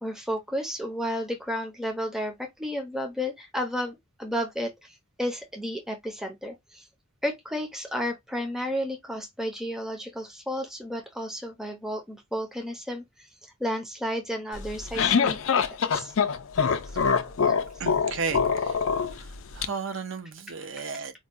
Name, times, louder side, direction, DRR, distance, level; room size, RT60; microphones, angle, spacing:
voice 1, 0.0-6.9 7.2-13.3 13.6-15.6 15.9-16.1, equal, ahead, 0.6 m, -32 dB
sound 1, 14.6-19.7, left 6 dB, 60° left, 0.4 m, -24 dB
voice 2, 17.8-18.7 19.5-21.1, right 5 dB, 55° right, 0.6 m, -33 dB
4.4 x 2.2 x 2.5 m
head